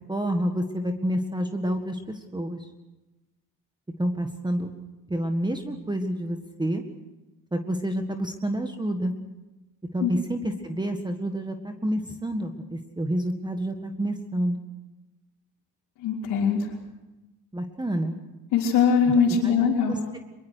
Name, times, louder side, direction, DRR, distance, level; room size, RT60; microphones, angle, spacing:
voice 1, 0.1-2.7 4.0-4.7 5.1-6.8 7.5-9.1 9.9-14.6 17.5-18.2 19.0-19.1 19.4-20.2, right 1 dB, 10° right, 6 dB, 1.7 m, -29 dB
voice 2, 16.0-16.6 18.5-19.9, left 6 dB, 85° left, -6 dB, 3.8 m, -21 dB
23.0 x 22.5 x 6.5 m, 1.1 s
cardioid pair, 95°, 38 cm